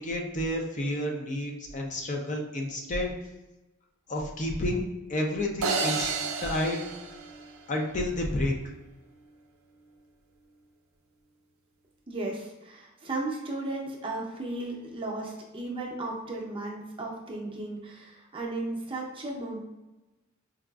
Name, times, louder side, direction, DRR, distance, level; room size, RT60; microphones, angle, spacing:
voice 1, 0.0-3.1 4.1-4.8 5.1-6.1 6.4-6.8 7.7-8.5, left 1 dB, 35° left, 0 dB, 0.5 m, -30 dB
sound 1, 5.6-8.0, right 4 dB, 75° right, 0.5 m, -31 dB
voice 2, 12.1-19.6, right 2 dB, 25° right, -2 dB, 0.6 m, -35 dB
4.7 x 2.4 x 2.3 m, 1.1 s
head